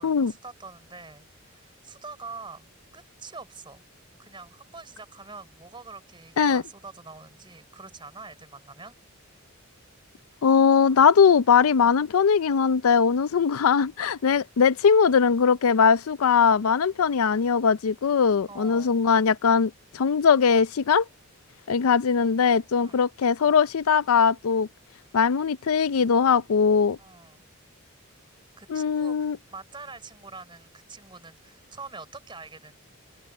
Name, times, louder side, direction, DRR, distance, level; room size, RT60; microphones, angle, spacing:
voice 1, 0.0-2.7 2.9-3.8 4.2-8.9 18.5-19.0 22.8-23.0 27.0-27.4 28.6-32.7, right 4 dB, 20° right, 3.9 m, -45 dB
voice 2, 10.4-21.1 21.7-24.7 25.1-27.0 28.7-29.4, left 6 dB, 80° left, 0.5 m, -20 dB
open air
head